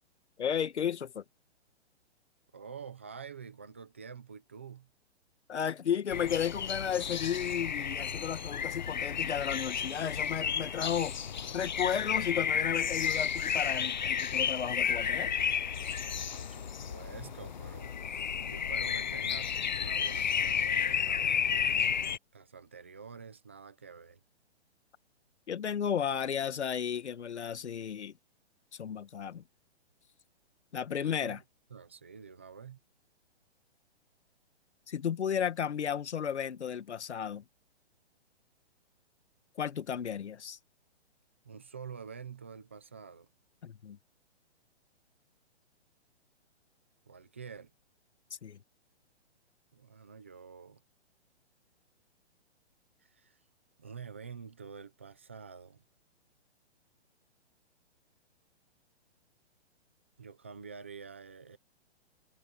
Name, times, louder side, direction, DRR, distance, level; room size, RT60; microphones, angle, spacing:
voice 1, 0.4-1.2 5.5-11.2 11.5-15.3 25.5-28.1 28.7-29.4 30.7-31.4 34.9-37.4 39.6-40.6 43.6-44.0 48.3-48.6, left 8 dB, 80° left, 1.7 m, -33 dB
voice 2, 2.5-4.9 16.3-22.0 22.3-24.2 30.9-31.4 31.7-32.8 41.4-43.3 47.1-47.7 49.7-50.8 53.0-53.4 53.8-55.8 60.2-61.6, right 6 dB, 10° right, 0.5 m, -48 dB
sound 1, 6.1-22.2, left 7 dB, 45° left, 0.5 m, -32 dB
hypercardioid pair, 180°, 34 cm